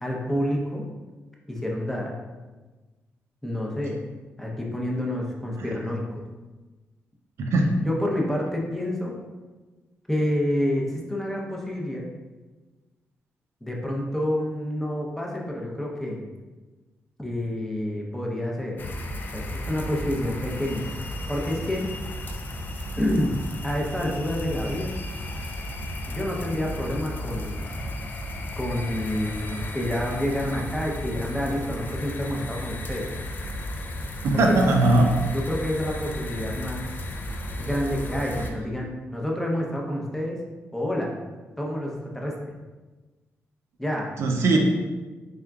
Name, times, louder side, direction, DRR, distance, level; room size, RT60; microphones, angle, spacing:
voice 1, 0.0-0.8 1.5-2.1 3.4-4.0 4.4-6.0 7.8-9.1 10.1-12.1 13.6-16.2 17.2-18.8 19.3-20.9 21.3-21.9 23.0-23.4 23.6-25.0 26.1-27.6 28.5-33.1 34.5-34.6 35.3-36.9 37.6-40.4 40.7-41.1 41.6-42.5 43.8-44.1, left 1 dB, 5° left, -2 dB, 0.7 m, -28 dB
voice 2, 7.4-7.7 34.2-35.1 44.2-44.6, right 2 dB, 80° right, 2 dB, 0.5 m, -19 dB
sound 1, 18.8-38.5, left 1 dB, 45° left, 0.4 m, -34 dB
3.6 x 3.6 x 2.3 m, 1.3 s
cardioid pair, 110°, 5 cm